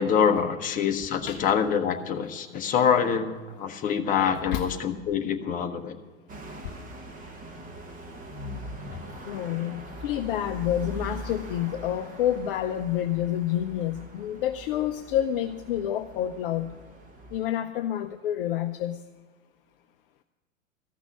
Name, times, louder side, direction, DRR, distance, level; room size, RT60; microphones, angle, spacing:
voice 1, 0.0-6.0, left 7 dB, 20° left, 4 dB, 1.0 m, -25 dB
sound 1, 6.3-17.5, right 1 dB, 20° right, 1.4 m, -42 dB
voice 2, 9.3-16.7 17.3-19.0, left 11 dB, 45° left, 7 dB, 0.6 m, -28 dB
14.0 x 6.0 x 9.7 m, 1.4 s
figure-of-eight pair, 105°, 40 cm